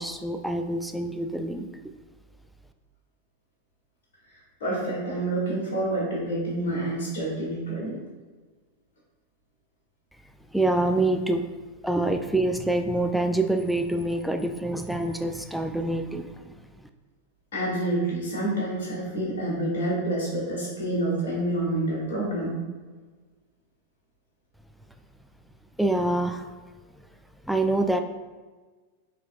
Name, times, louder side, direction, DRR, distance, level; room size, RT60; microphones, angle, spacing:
voice 1, 0.0-1.7 10.5-11.5 11.8-16.4 25.8-26.5 27.4-28.0, right 2 dB, ahead, 5 dB, 0.3 m, -26 dB
voice 2, 4.6-8.0 17.5-22.6, right 1 dB, 55° left, -6 dB, 1.5 m, -28 dB
5.6 x 3.2 x 2.5 m, 1.3 s
figure-of-eight pair, 90°, 0 cm